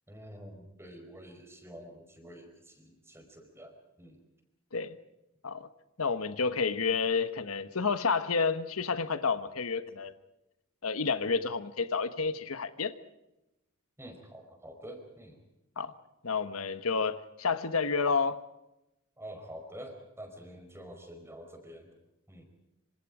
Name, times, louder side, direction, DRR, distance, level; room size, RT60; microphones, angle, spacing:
voice 1, 0.1-4.2 14.0-15.4 19.2-21.9 22.3-22.4, equal, 10° right, 5 dB, 4.8 m, -48 dB
voice 2, 6.0-10.1 10.8-12.9 15.8-15.9 16.2-18.4, left 5 dB, 85° left, 12 dB, 1.3 m, -30 dB
26.5 x 26.0 x 5.0 m, 0.90 s
head